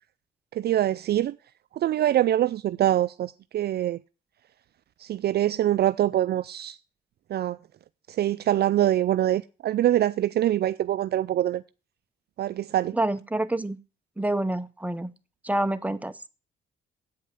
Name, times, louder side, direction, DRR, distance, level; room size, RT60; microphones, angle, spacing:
voice 1, 0.5-1.3 1.7-4.0 5.0-6.8 7.3-7.6 8.1-11.6 12.4-13.0, right 12 dB, 55° right, 0.4 m, -24 dB
voice 2, 12.9-13.8 14.2-15.1 15.4-16.3, right 1 dB, 5° right, 0.7 m, -27 dB
8.5 x 5.4 x 7.9 m
cardioid pair, 90°, 20 cm